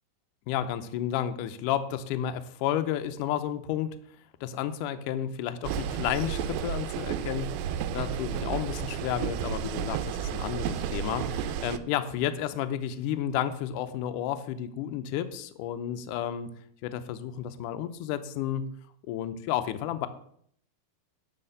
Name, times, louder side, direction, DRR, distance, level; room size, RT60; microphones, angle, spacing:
voice 1, 0.5-4.0 4.4-16.5 16.8-18.6 19.1-20.1, left 10 dB, 90° left, 9 dB, 1.8 m, -32 dB
sound 1, 5.6-11.8, right 8 dB, 90° right, 2.6 m, -32 dB
11.5 x 4.2 x 6.7 m, 0.65 s
omnidirectional pair, 4.4 m